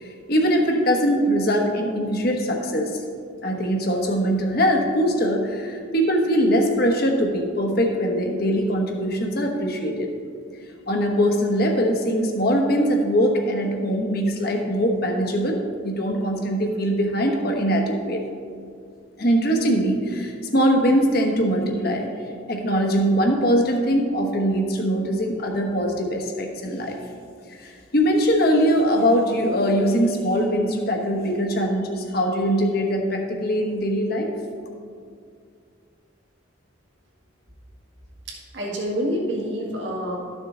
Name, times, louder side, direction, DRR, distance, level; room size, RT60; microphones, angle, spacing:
voice 1, 0.0-2.9 3.4-10.1 10.9-18.2 19.2-22.1 22.5-27.0 27.5-34.3, equal, 50° left, 2 dB, 1.2 m, -22 dB
voice 2, 38.3-40.2, equal, 65° right, -2 dB, 1.9 m, -27 dB
13.0 x 6.5 x 3.8 m, 2.2 s
head